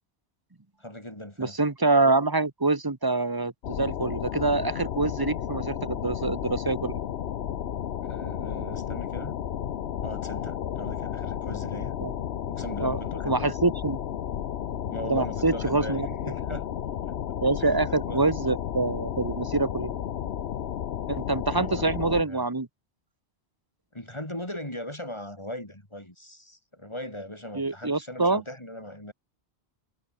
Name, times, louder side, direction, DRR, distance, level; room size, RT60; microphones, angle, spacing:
voice 1, 0.8-1.6 8.1-9.4 10.0-11.9 12.5-13.5 14.9-16.0 16.3-16.7 17.1-17.2 17.6-18.2 21.5-22.5 23.9-29.1, left 1 dB, 25° left, 5.2 m, -39 dB
voice 2, 1.4-7.0 12.0-12.1 12.8-13.0 13.2-14.0 15.1-16.1 17.4-19.9 21.1-22.7 27.5-28.4, right 3 dB, 20° right, 1.3 m, -25 dB
sound 1, 3.6-22.2, left 9 dB, 70° left, 1.0 m, -33 dB
omnidirectional pair, 1.1 m